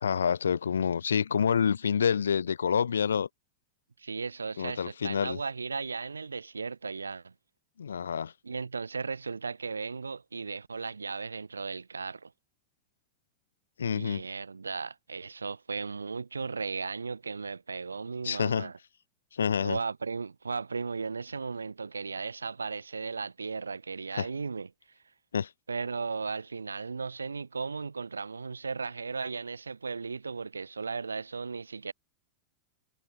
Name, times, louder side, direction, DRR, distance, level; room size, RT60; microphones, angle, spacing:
voice 1, 0.0-3.3 4.6-5.4 7.8-8.3 13.8-14.2 18.2-18.7 19.3-19.8 24.1-24.3 25.3-25.5, left 7 dB, 70° left, 2.0 m, -28 dB
voice 2, 4.0-7.3 8.4-12.3 13.9-18.7 19.6-24.7 25.7-31.9, right 4 dB, 75° right, 4.4 m, -36 dB
figure-of-eight pair, 90°, 0 cm